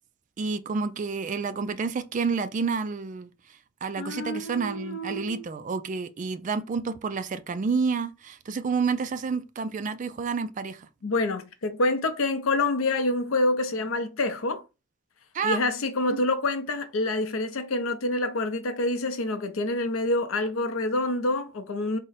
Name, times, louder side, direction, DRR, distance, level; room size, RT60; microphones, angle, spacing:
voice 1, 0.4-3.3 3.8-10.9 15.3-15.6 16.1-16.2, right 5 dB, 40° right, 0.3 m, -29 dB
voice 2, 4.0-5.4 11.0-14.6 15.4-22.0, left 2 dB, 85° left, 0.6 m, -27 dB
3.6 x 2.1 x 4.0 m
head